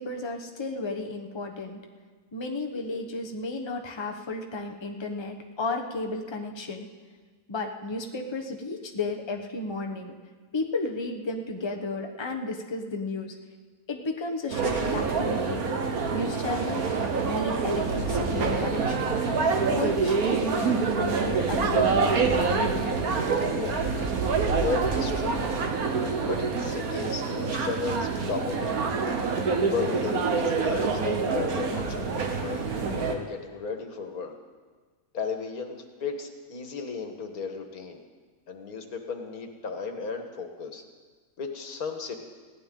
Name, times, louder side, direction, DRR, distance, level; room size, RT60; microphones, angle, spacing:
voice 1, 0.0-1.8 2.3-6.9 7.5-10.1 10.5-13.3 13.9-15.7 16.1-16.9 17.2-19.2 19.7-22.1, left 2 dB, 20° left, 3 dB, 1.0 m, -33 dB
sound 1, 14.5-33.2, right 4 dB, 85° right, 1.8 m, -26 dB
voice 2, 23.5-24.1 24.5-25.5 26.3-28.7 29.5-34.3 35.1-38.0 38.5-40.8 41.4-42.1, left 5 dB, 85° left, 5 dB, 1.9 m, -34 dB
21.0 x 16.0 x 3.8 m, 1.5 s
omnidirectional pair, 1.5 m